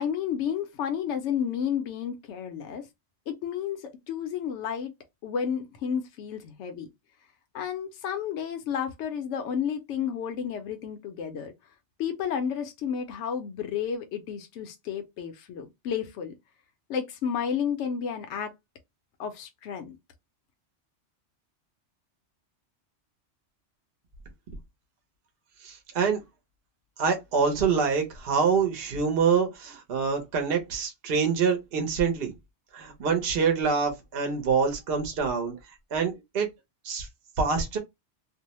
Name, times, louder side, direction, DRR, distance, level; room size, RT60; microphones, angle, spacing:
voice 1, 0.0-2.9 3.3-4.9 5.2-6.9 7.5-11.5 12.0-16.3 16.9-18.5 19.2-20.0, left 8 dB, 80° left, 0.9 m, -31 dB
voice 2, 25.6-26.2 27.0-32.3 32.7-35.6 35.9-36.5 36.8-37.1 37.4-37.8, right 5 dB, 55° right, 0.9 m, -26 dB
2.6 x 2.0 x 2.8 m
omnidirectional pair, 1.2 m